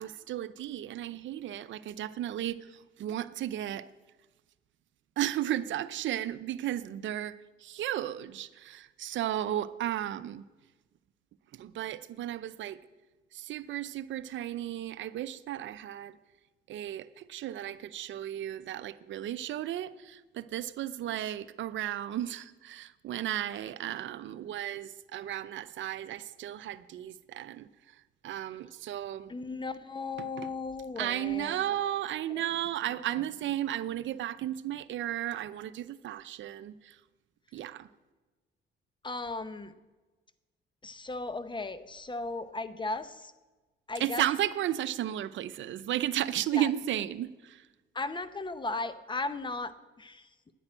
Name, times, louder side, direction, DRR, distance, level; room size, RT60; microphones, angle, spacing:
voice 1, 0.0-3.9 5.2-10.4 11.5-12.8 13.3-16.2 16.7-29.3 30.4-30.5 31.0-37.0 37.5-37.9 44.0-47.7, right 12 dB, 70° right, 0.7 m, -34 dB
voice 2, 29.3-31.9 32.3-32.4 39.0-39.7 40.8-43.3 43.9-44.2 46.5-46.7 47.9-50.3, left 3 dB, 25° left, 0.9 m, -36 dB
10.5 x 10.0 x 8.8 m
cardioid pair, 90°, 20 cm